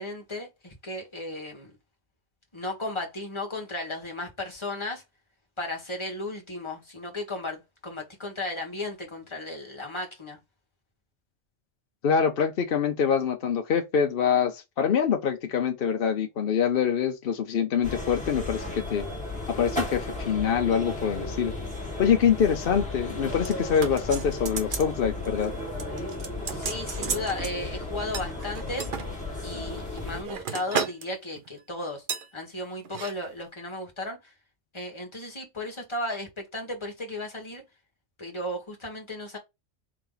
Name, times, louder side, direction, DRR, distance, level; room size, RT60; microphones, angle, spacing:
voice 1, 0.0-1.7 2.5-5.0 5.6-10.4 26.5-28.9 29.4-32.0 32.3-34.3 34.7-37.6 38.2-39.4, left 2 dB, 25° left, 1.4 m, -35 dB
voice 2, 12.0-19.1 19.5-21.5 22.0-25.5, left 7 dB, 55° left, 0.8 m, -25 dB
sound 1, 17.8-30.2, left 2 dB, 5° left, 1.4 m, -34 dB
sound 2, 23.5-24.9 25.2-25.5 25.8-27.5 28.1-29.1 29.7-31.1 31.4-31.6 32.1-32.3 32.8-33.1 33.4-33.5, right 6 dB, 50° right, 0.8 m, -34 dB
4.8 x 2.8 x 3.8 m
omnidirectional pair, 1.3 m